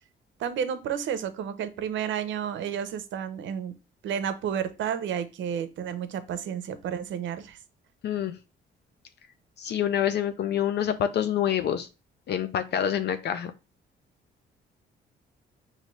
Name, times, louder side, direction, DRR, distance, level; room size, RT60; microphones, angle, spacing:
voice 1, 0.4-3.7 4.0-7.6, right 8 dB, 70° right, 11 dB, 0.6 m, -31 dB
voice 2, 8.0-8.3 9.6-11.9 12.3-13.5, left 9 dB, 60° left, 10 dB, 0.4 m, -26 dB
5.0 x 2.7 x 3.1 m, 0.30 s
cardioid pair, 90°, 20 cm